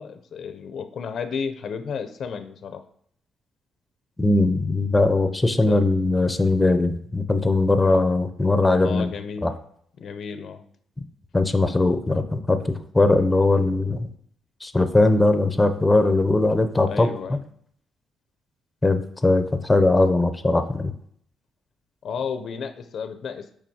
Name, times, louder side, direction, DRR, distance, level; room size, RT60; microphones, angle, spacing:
voice 1, 0.0-2.8 5.7-5.8 8.8-9.5 10.0-10.6 16.9-17.4 22.0-23.5, left 6 dB, 60° left, 9 dB, 0.5 m, -32 dB
voice 2, 4.2-9.1 9.4-9.5 11.3-14.1 14.6-17.4 18.8-20.9, left 2 dB, 15° left, 9 dB, 0.5 m, -20 dB
7.3 x 4.9 x 2.8 m, 0.65 s
cardioid pair, 90°, 0 cm